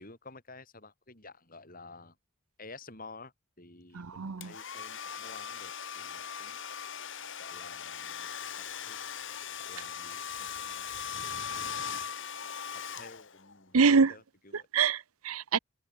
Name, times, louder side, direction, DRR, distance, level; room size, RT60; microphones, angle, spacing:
voice 1, 0.0-2.2 2.6-6.6 7.4-9.0 9.6-11.9 12.9-14.7, left 3 dB, 40° left, 5.9 m, -52 dB
voice 2, 3.9-4.5 13.7-14.1 14.5-15.6, right 5 dB, 80° right, 0.7 m, -25 dB
Domestic sounds home sounds, 4.4-13.6, left 7 dB, 60° left, 2.7 m, -39 dB
head